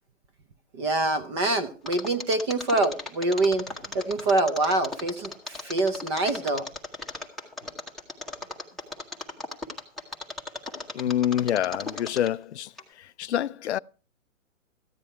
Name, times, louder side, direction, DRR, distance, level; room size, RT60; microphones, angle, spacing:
voice 1, 0.7-3.7 3.9-6.7, right 2 dB, 20° right, 0.6 m, -25 dB
Mechanisms, 1.9-12.4 12.8-12.9, left 3 dB, ahead, 1.0 m, -36 dB
voice 2, 10.9-12.7 13.0-13.8, left 11 dB, 55° left, 0.5 m, -27 dB
14.5 x 9.7 x 4.4 m
hypercardioid pair, 145°, 40 cm